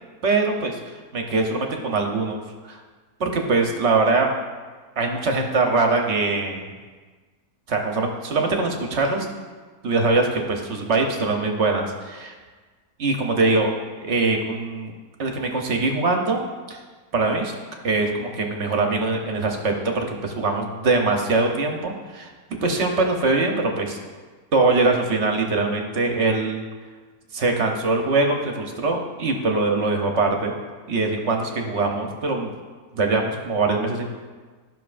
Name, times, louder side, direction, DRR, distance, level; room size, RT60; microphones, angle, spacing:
voice 1, 0.2-0.8 1.1-2.4 2.7-2.8 3.2-4.3 5.0-6.7 7.7-9.2 9.8-12.3 13.0-13.7 14.0-14.9 15.2-16.4 16.7-16.8 17.1-17.5 17.8-22.3 22.6-24.0 24.5-26.6 27.3-30.5 30.9-32.5 32.9-34.1, right 3 dB, 50° right, 2 dB, 1.0 m, -22 dB
13.0 x 6.1 x 2.5 m, 1.4 s
omnidirectional pair, 1.7 m